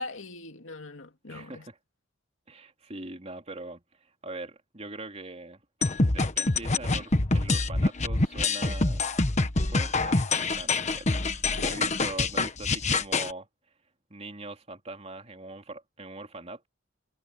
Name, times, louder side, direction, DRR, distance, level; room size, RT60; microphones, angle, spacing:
voice 1, 0.0-1.7 11.6-11.9, left 2 dB, 80° left, 2.5 m, -40 dB
voice 2, 1.3-1.8 2.5-5.6 6.1-9.1 9.7-13.5 14.1-16.7, right 2 dB, 30° right, 3.5 m, -42 dB
sound 1, 5.8-13.3, left 3 dB, 35° left, 1.2 m, -26 dB
head